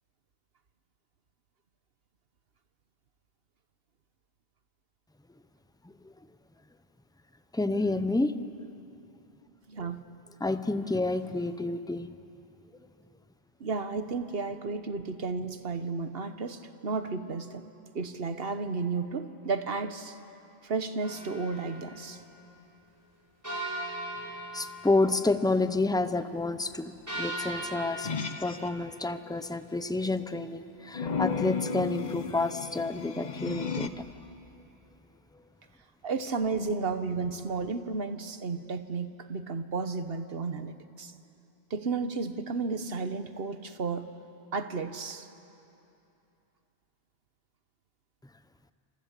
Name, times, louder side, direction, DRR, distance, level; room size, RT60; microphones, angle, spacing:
voice 1, 7.5-8.3 10.4-12.1 24.5-28.1 28.4-34.1, left 2 dB, 5° left, 10 dB, 0.7 m, -29 dB
voice 2, 9.7-10.0 13.6-17.7 17.9-20.2 20.6-22.2 36.0-41.1 41.7-44.1 44.5-45.3, right 4 dB, 70° right, 10 dB, 1.3 m, -33 dB
sound 1, 21.0-21.9 23.4-25.3 27.1-28.7, right 1 dB, 15° right, 5.9 m, -38 dB
sound 2, 28.0-28.7 30.9-33.9, left 5 dB, 50° left, 1.0 m, -33 dB
29.0 x 26.5 x 7.5 m, 2.9 s
omnidirectional pair, 1.0 m